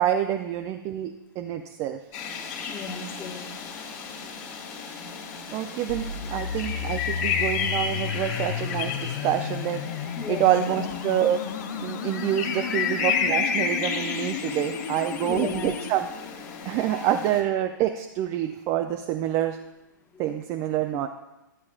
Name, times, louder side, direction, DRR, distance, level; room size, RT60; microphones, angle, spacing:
voice 1, 0.0-2.0 5.5-11.4 11.8-16.1 16.7-19.6 20.2-21.1, right 11 dB, 30° right, 6 dB, 0.5 m, -27 dB
sound 1, 2.1-17.4, left 6 dB, 35° left, 1.9 m, -32 dB
voice 2, 2.7-3.5 10.2-10.9 12.6-12.8 14.5-14.6 15.2-15.8 16.9-17.1, left 5 dB, 20° left, 2 dB, 1.4 m, -35 dB
sound 2, 5.9-15.9, left 8 dB, 55° left, 0.7 m, -34 dB
12.5 x 8.4 x 2.4 m, 0.95 s
figure-of-eight pair, 115°, 11 cm